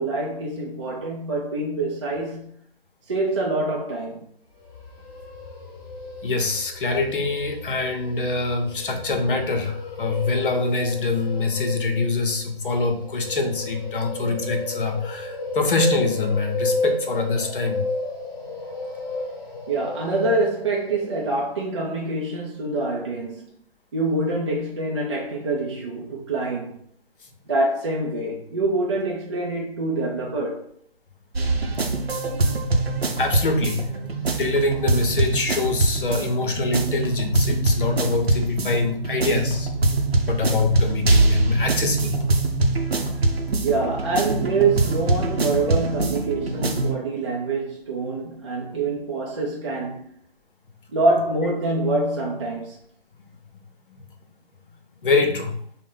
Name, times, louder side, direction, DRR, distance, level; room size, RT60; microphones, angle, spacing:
voice 1, 0.0-2.5 3.1-4.3 19.7-23.5 23.9-26.8 27.5-30.7 43.6-50.1 50.9-52.8, right 2 dB, 30° right, 0.4 m, -25 dB
sound 1, 4.5-21.5, left 2 dB, 20° left, 0.7 m, -33 dB
voice 2, 6.2-17.8 33.2-33.8 34.4-39.7 40.2-42.2 53.9-54.0 55.0-55.6, left 3 dB, 60° left, 0.8 m, -24 dB
sound 2, 31.4-46.9, right 2 dB, 85° right, 0.7 m, -23 dB
3.7 x 2.1 x 3.8 m
figure-of-eight pair, 135°, 30 cm